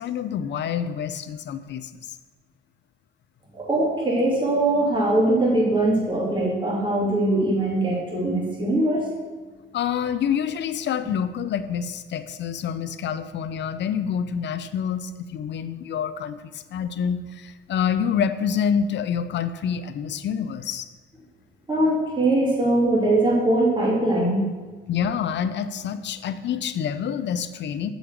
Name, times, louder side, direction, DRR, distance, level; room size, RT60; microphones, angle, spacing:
voice 1, 0.0-2.2 9.7-20.9 24.9-27.9, left 8 dB, 65° left, 12 dB, 0.6 m, -27 dB
voice 2, 3.5-9.0 21.7-24.4, right 1 dB, 25° right, -4 dB, 2.6 m, -21 dB
6.8 x 5.2 x 6.6 m, 1.4 s
cardioid pair, 90°, 20 cm